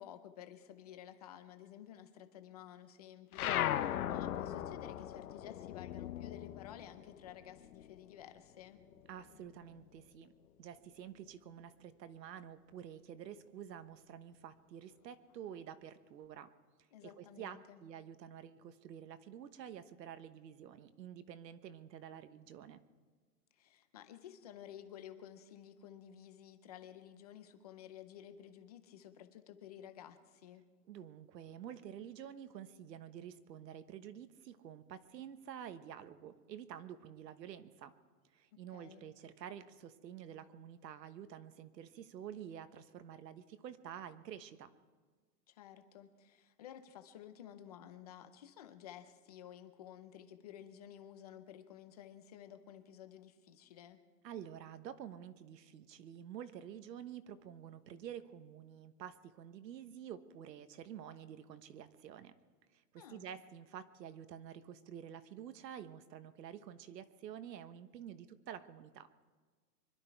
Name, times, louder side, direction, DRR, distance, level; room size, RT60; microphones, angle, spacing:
voice 1, 0.0-8.8 16.9-17.8 23.5-30.6 38.5-39.1 45.5-54.0 63.0-63.3, left 10 dB, 25° left, 9 dB, 0.6 m, -53 dB
sound 1, 3.3-8.2 8.5-10.0, left 11 dB, 65° left, 0.9 m, -39 dB
voice 2, 9.1-10.3 10.6-16.5 17.0-22.8 30.9-37.9 38.3-44.7 54.2-62.3 62.7-69.1, right 9 dB, 85° right, 11 dB, 1.3 m, -49 dB
25.0 x 12.0 x 4.6 m, 1.4 s
supercardioid pair, 170°, 48 cm